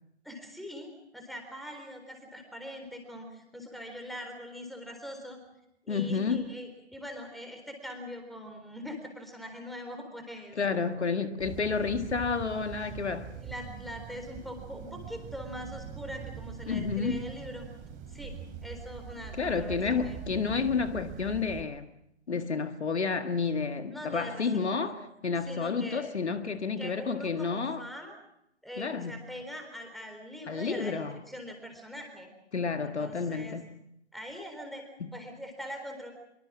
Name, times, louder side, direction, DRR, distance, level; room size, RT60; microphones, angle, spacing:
voice 1, 0.2-5.4 5.8-10.6 13.3-17.7 18.1-18.3 18.6-20.2 23.9-25.0 25.4-26.1 26.8-28.2 28.6-32.3 32.8-33.6 34.1-34.8 35.1-36.1, equal, ahead, 4.0 m, -42 dB
voice 2, 5.9-6.4 10.6-13.3 16.7-17.2 19.4-21.9 22.3-27.8 28.8-29.2 30.5-31.2 32.5-33.7 35.0-35.1, left 5 dB, 75° left, 1.7 m, -30 dB
sound 1, 11.4-21.6, right 8 dB, 25° right, 3.6 m, -43 dB
24.5 x 24.0 x 6.2 m
figure-of-eight pair, 125°, 34 cm